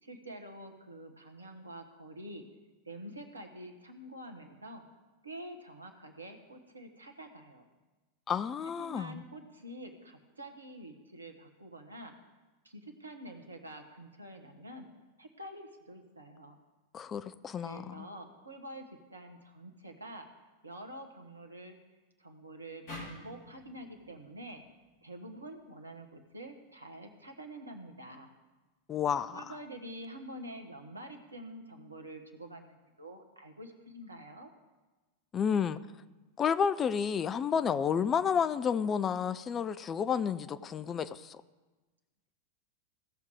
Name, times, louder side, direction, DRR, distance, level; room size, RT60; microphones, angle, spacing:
voice 1, 0.0-2.4 2.8-4.8 5.2-7.6 8.6-12.1 12.6-14.9 15.2-16.6 17.6-20.3 20.6-21.8 22.2-24.6 25.0-28.3 29.3-34.5, right 1 dB, 80° right, 5 dB, 1.2 m, -47 dB
voice 2, 8.3-9.2 16.9-18.1 28.9-29.4 35.3-35.8 36.4-41.4, left 7 dB, 25° left, 13 dB, 0.4 m, -31 dB
sound 1, 22.9-26.1, left 2 dB, 45° left, 3.3 m, -50 dB
16.5 x 6.4 x 3.6 m, 1.2 s
figure-of-eight pair, 90°, 0 cm